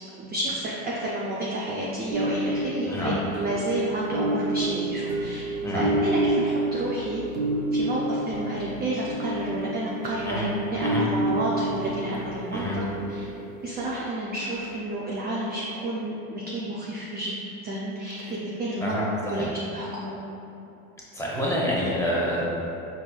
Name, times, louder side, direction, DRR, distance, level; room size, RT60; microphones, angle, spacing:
voice 1, 0.2-7.2 7.7-13.3 13.6-17.3 17.6-19.0 19.3-20.1, right 1 dB, 25° right, -5 dB, 0.4 m, -30 dB
sound 1, 2.1-13.7, right 1 dB, 75° right, 0.6 m, -29 dB
voice 2, 18.8-19.5 21.1-22.4, equal, 5° left, -6 dB, 0.7 m, -27 dB
4.5 x 2.6 x 2.2 m, 2.9 s
hypercardioid pair, 85°, 43 cm